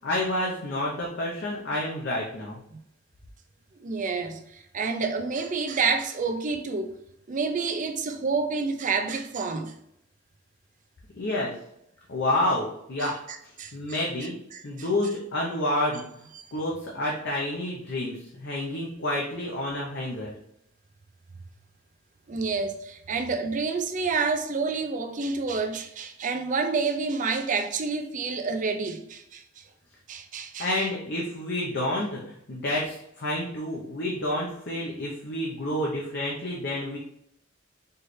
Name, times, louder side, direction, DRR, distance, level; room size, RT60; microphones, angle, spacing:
voice 1, 0.0-2.6 11.1-11.5 12.1-13.2 13.4-14.3 14.6-20.3 30.6-37.0, left 1 dB, 55° left, 0.8 m, -29 dB
voice 2, 3.8-7.0 7.3-9.7 13.0-13.1 13.6-13.7 14.5-14.6 16.4-16.5 22.3-29.6 30.1-30.7, right 4 dB, 40° right, 0.5 m, -28 dB
4.5 x 3.3 x 3.2 m
head